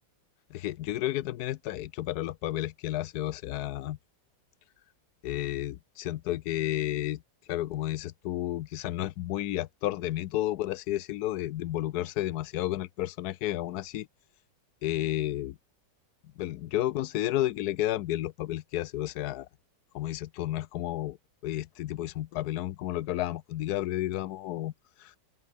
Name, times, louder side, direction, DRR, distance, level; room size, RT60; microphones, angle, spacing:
voice 1, 0.5-4.0 5.2-7.2 7.5-14.1 14.8-15.6 16.4-19.5 19.9-21.2 21.4-24.7 25.0-25.2, left 14 dB, 70° left, 1.1 m, -32 dB
open air
omnidirectional pair, 1.9 m